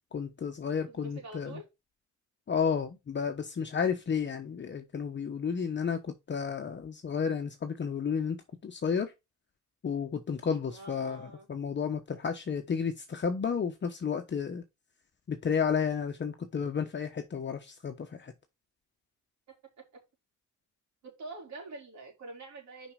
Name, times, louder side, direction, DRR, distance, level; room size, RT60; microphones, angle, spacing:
voice 1, 0.1-1.6 2.5-8.4 8.6-9.1 9.8-14.6 15.3-18.3, left 6 dB, 40° left, 1.0 m, -32 dB
voice 2, 0.9-1.6 10.7-11.5 19.5-19.6 21.0-22.9, right 2 dB, 65° right, 4.0 m, -45 dB
5.8 x 5.3 x 4.9 m
cardioid pair, 90°, 30 cm